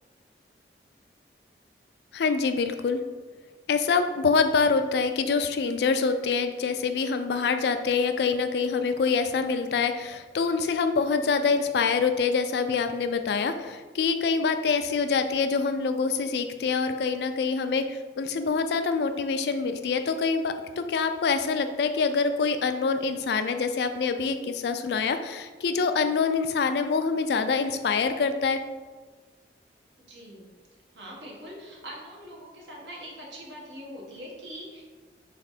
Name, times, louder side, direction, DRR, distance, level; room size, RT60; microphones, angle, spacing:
voice 1, 2.1-3.0 3.7-28.6, left 5 dB, 65° left, 8 dB, 0.3 m, -25 dB
voice 2, 30.0-30.5 30.9-34.8, equal, 90° right, -3 dB, 1.1 m, -42 dB
3.6 x 3.2 x 4.1 m, 1.4 s
head